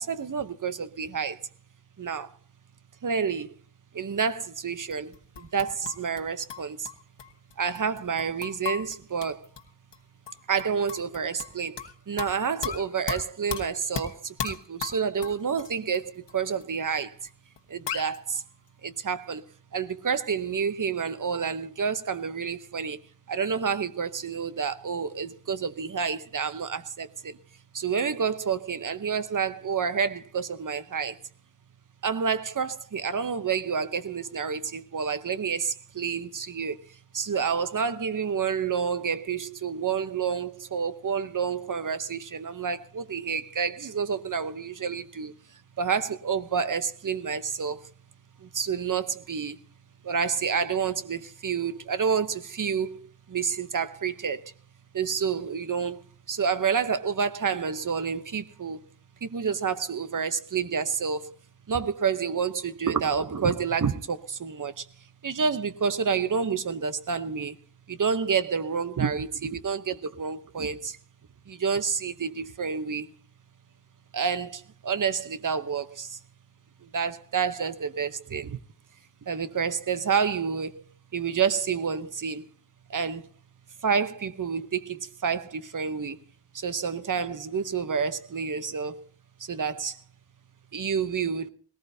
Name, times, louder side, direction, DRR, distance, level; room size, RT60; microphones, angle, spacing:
voice 1, 0.0-1.4 2.0-2.3 3.0-3.5 3.9-6.9 7.6-9.5 10.5-17.3 17.7-18.4 18.8-19.4 19.7-23.0 23.3-27.4 27.7-31.2 32.0-45.3 45.8-47.9 48.4-49.6 50.0-54.5 54.9-56.0 56.3-58.8 59.2-61.4 61.7-64.9 65.2-67.6 67.9-71.0 71.5-73.1 74.1-76.2 76.8-78.6 79.3-80.8 81.1-82.5 82.9-83.3 83.8-86.2 86.5-89.1 89.4-90.0 90.7-91.5, right 6 dB, 50° right, 0.9 m, -29 dB
sound 1, 4.9-6.2 6.5-9.6 9.9-10.0 10.3-11.9 12.2-16.0 16.3-16.4 16.6-16.7 17.3-17.4 17.6-17.7 17.9-18.2, left 8 dB, 85° left, 1.3 m, -35 dB
19.5 x 18.0 x 2.7 m
wide cardioid pair, 90°, 42 cm